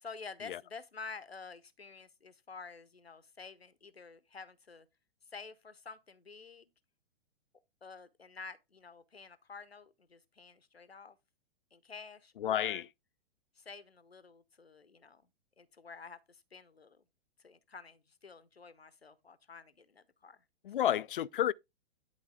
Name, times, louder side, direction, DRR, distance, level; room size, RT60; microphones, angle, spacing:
voice 1, 0.0-4.9 5.3-6.7 7.8-11.2 11.7-12.8 13.6-15.2 15.6-17.0 17.4-20.4 20.8-20.9, left 4 dB, 85° left, 0.9 m, -50 dB
voice 2, 12.4-12.9 20.6-21.5, left 11 dB, 60° left, 0.5 m, -31 dB
10.5 x 4.0 x 3.5 m
figure-of-eight pair, 110°, 30 cm